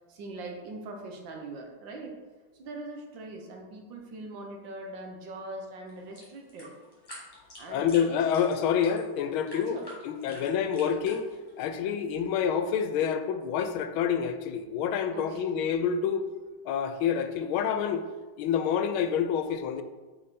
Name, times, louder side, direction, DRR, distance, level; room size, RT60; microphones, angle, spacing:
voice 1, 0.1-2.2 2.5-6.7 7.6-8.2 9.7-9.9 10.2-10.6 15.1-15.4, right 2 dB, 70° right, 1 dB, 1.6 m, -42 dB
sound 1, 5.9-11.6, equal, 10° left, 1.8 m, -48 dB
voice 2, 7.7-9.8 10.0-11.3 11.6-16.2 16.6-18.0 18.4-19.8, left 7 dB, 85° left, 9 dB, 1.4 m, -27 dB
5.3 x 5.0 x 4.2 m, 1.3 s
omnidirectional pair, 2.2 m